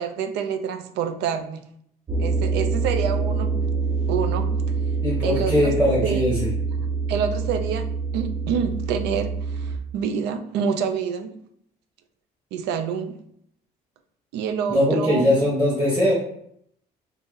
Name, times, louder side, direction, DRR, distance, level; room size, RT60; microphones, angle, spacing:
voice 1, 0.0-1.6 2.2-3.5 4.1-4.5 5.2-5.7 6.0-6.5 7.1-7.8 8.1-11.4 12.5-13.2 14.3-15.3, right 7 dB, 80° right, 8 dB, 0.4 m, -27 dB
sound 1, 2.1-9.8, right 4 dB, 30° right, 0.7 m, -25 dB
voice 2, 5.0-6.5 14.7-16.1, left 1 dB, 10° right, -6 dB, 1.0 m, -20 dB
2.7 x 2.6 x 3.7 m, 0.70 s
cardioid pair, 110°, 17 cm